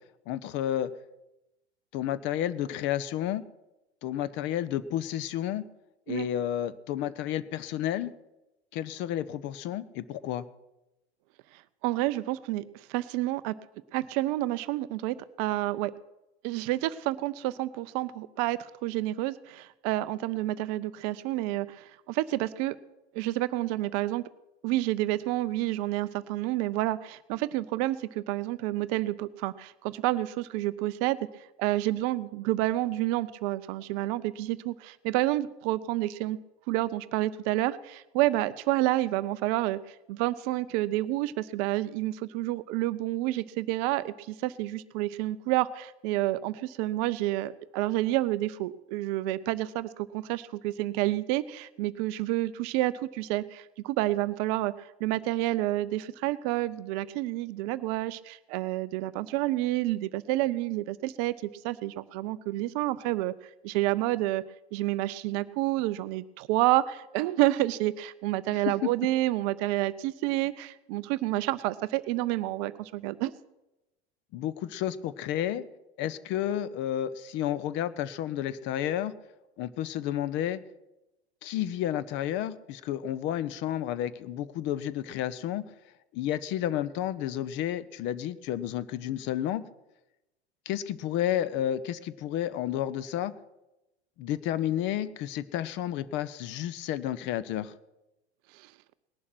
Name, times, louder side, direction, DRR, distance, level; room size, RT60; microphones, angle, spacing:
voice 1, 0.3-0.9 1.9-3.4 4.0-5.6 6.1-8.1 8.7-10.4 68.5-68.9 74.3-75.6 76.0-79.1 79.6-80.6 81.4-85.6 86.1-89.6 90.7-93.3 94.2-97.7, left 11 dB, 35° left, 15 dB, 0.8 m, -31 dB
voice 2, 11.8-13.5 13.9-15.9 16.4-22.8 23.1-24.2 24.6-36.4 36.7-63.3 63.6-64.4 64.7-73.3 98.5-98.7, right 16 dB, 35° right, 15 dB, 0.5 m, -29 dB
19.0 x 11.0 x 6.1 m, 0.95 s
figure-of-eight pair, 85°, 33 cm